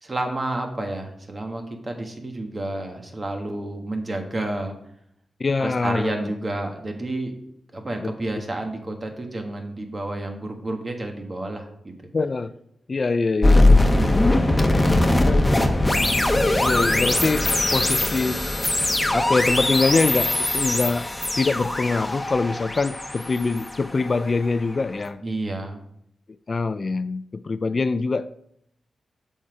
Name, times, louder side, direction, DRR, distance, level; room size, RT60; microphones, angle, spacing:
voice 1, 0.0-4.7 5.6-7.3 7.7-11.9 13.5-13.9 14.7-15.9 25.2-25.8, right 2 dB, 35° right, 4 dB, 1.5 m, -30 dB
voice 2, 5.4-6.1 8.0-8.1 12.1-12.5 12.9-13.8 15.2-15.6 16.6-18.5 19.1-21.1 21.4-25.2 26.5-28.3, left 3 dB, 45° left, 12 dB, 0.3 m, -24 dB
sound 1, 13.4-24.5, left 2 dB, 15° left, 1.0 m, -21 dB
7.2 x 5.6 x 4.8 m, 0.73 s
cardioid pair, 65°, 0 cm